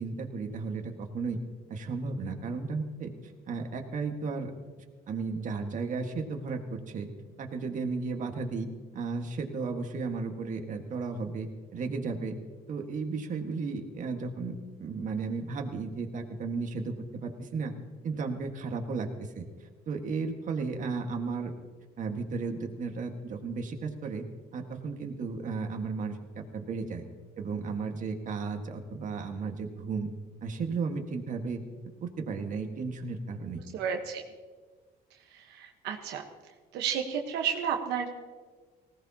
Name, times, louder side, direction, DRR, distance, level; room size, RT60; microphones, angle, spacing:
voice 1, 0.0-1.4 1.7-3.1 3.5-4.5 5.1-7.1 7.4-8.7 8.9-12.4 12.7-17.7 18.0-21.5 22.0-24.2 24.5-27.0 27.4-30.1 30.4-31.6 32.0-33.6, right 4 dB, 50° right, 3 dB, 1.7 m, -34 dB
voice 2, 33.7-34.2 35.1-36.2 36.7-38.1, right 7 dB, 85° right, 2 dB, 1.2 m, -32 dB
19.5 x 17.0 x 2.9 m, 1.4 s
cardioid pair, 110°, 17 cm